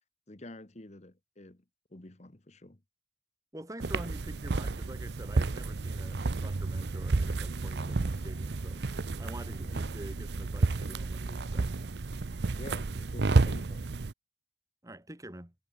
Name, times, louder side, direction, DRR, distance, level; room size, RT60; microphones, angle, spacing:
voice 1, 0.3-1.6 1.9-2.8 9.6-9.7 12.6-13.9, left 1 dB, 40° left, 1.4 m, -48 dB
voice 2, 3.5-8.9 9.2-11.7 14.8-15.5, right 1 dB, 20° right, 2.0 m, -46 dB
sound 1, 3.8-14.1, right 3 dB, 70° right, 0.7 m, -31 dB
head